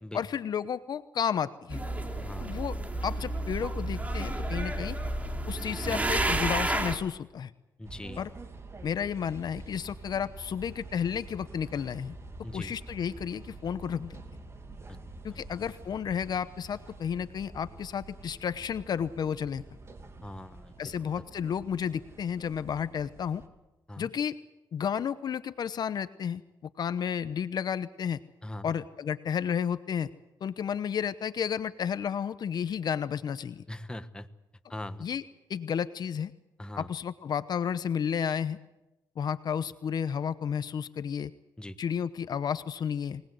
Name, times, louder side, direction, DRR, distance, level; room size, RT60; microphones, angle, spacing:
voice 1, 0.1-1.8 2.4-2.8 3.0-5.0 5.5-7.5 8.2-8.3 8.8-12.1 12.5-14.2 15.2-19.6 20.8-23.4 24.0-24.4 24.7-26.4 26.8-28.2 28.6-30.1 30.4-33.6 35.0-35.2 35.5-36.3 36.8-38.6 39.2-41.3 41.8-43.2, left 8 dB, 60° left, 14 dB, 0.9 m, -32 dB
sound 1, 1.7-7.0, right 1 dB, 20° right, 3.1 m, -31 dB
voice 2, 2.1-2.6 7.8-8.2 12.4-12.7 14.9-15.0 15.3-15.5 20.2-20.7 23.9-24.1 28.4-28.7 33.7-34.3 34.7-35.1 36.6-36.9 41.6-41.8, left 1 dB, 10° left, 10 dB, 1.3 m, -41 dB
sound 2, 7.8-23.5, right 2 dB, 35° right, 2.8 m, -47 dB
24.0 x 19.5 x 7.9 m, 0.97 s
cardioid pair, 80°, 8 cm